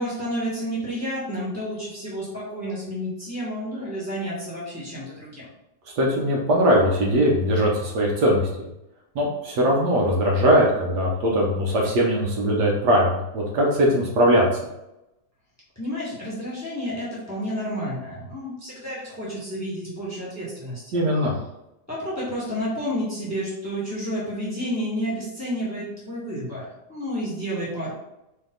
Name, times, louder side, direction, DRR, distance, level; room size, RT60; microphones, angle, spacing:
voice 1, 0.0-5.5 15.7-21.0 21.9-27.9, equal, 10° left, -7 dB, 1.3 m, -30 dB
voice 2, 5.9-8.4 9.1-14.4 20.9-21.3, equal, 65° right, -2 dB, 1.4 m, -20 dB
4.5 x 2.9 x 3.8 m, 0.90 s
omnidirectional pair, 2.0 m